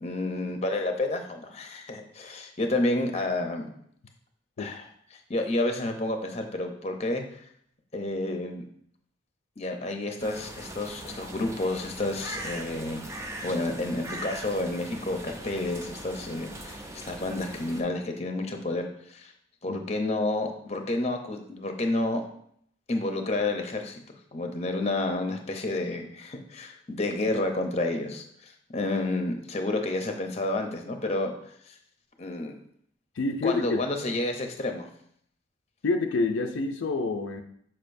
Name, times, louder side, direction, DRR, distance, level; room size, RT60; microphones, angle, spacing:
voice 1, 0.0-3.7 4.6-4.9 5.3-7.4 7.9-8.6 9.6-13.1 13.4-19.3 19.6-22.2 22.9-24.0 24.3-31.3 31.7-31.8 32.2-32.6 33.4-34.9, left 2 dB, 35° left, 4 dB, 0.7 m, -30 dB
sound 1, 10.2-17.8, right 1 dB, 15° right, 0.5 m, -40 dB
voice 2, 33.2-33.8 35.8-37.4, left 3 dB, 70° left, 4 dB, 0.5 m, -27 dB
6.5 x 5.8 x 2.6 m, 0.67 s
head